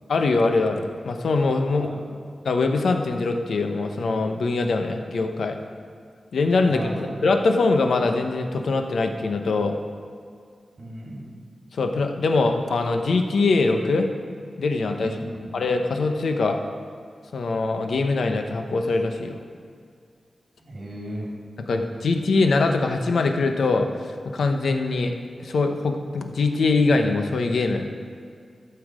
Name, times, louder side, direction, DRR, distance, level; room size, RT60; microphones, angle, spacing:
voice 1, 0.1-1.9 2.4-5.6 6.3-9.7 11.7-14.1 14.6-15.2 15.5-16.6 17.3-19.4 21.7-23.9 24.3-25.1 25.4-27.9, left 3 dB, 80° left, 5 dB, 0.9 m, -22 dB
voice 2, 6.6-7.2 10.8-11.3 15.0-15.5 20.6-21.4, right 1 dB, 45° right, -3 dB, 3.4 m, -35 dB
15.5 x 7.0 x 5.0 m, 2.2 s
wide cardioid pair, 105°, 0 cm